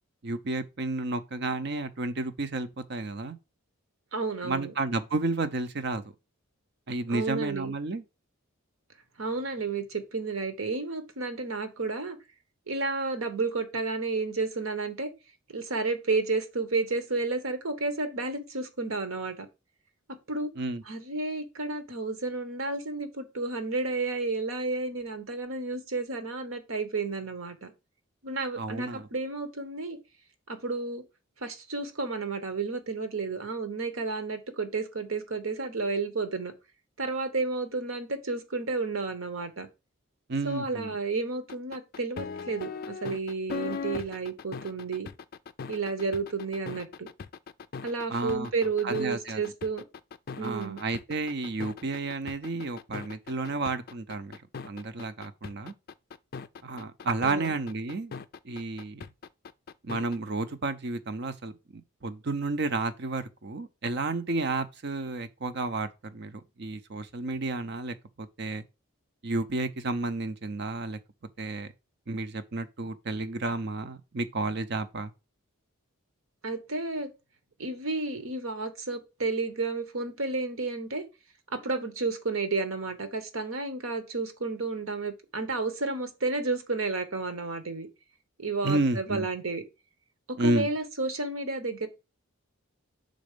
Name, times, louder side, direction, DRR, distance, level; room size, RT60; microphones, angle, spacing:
voice 1, 0.2-3.4 4.4-6.0 6.9-8.0 20.6-20.8 28.6-29.1 40.3-40.9 48.1-48.5 48.8-49.4 50.4-55.7 56.6-58.2 58.4-59.0 59.8-68.6 69.2-71.0 71.4-71.7 72.1-75.1 88.6-89.3 90.4-90.7, right 3 dB, 50° right, 0.6 m, -31 dB
voice 2, 4.1-4.7 7.1-7.7 9.2-12.2 12.7-15.1 15.5-19.5 20.3-20.5 20.9-27.7 28.2-30.0 30.5-31.0 31.4-36.5 37.0-39.7 40.4-45.1 45.7-47.1 47.8-49.8 50.4-50.8 57.2-57.5 76.4-77.1 77.6-81.0 81.5-87.9 88.4-89.6 90.3-91.9, right 3 dB, 70° right, 1.2 m, -31 dB
sound 1, 41.5-60.2, left 5 dB, 45° left, 0.3 m, -39 dB
5.2 x 4.1 x 5.0 m
head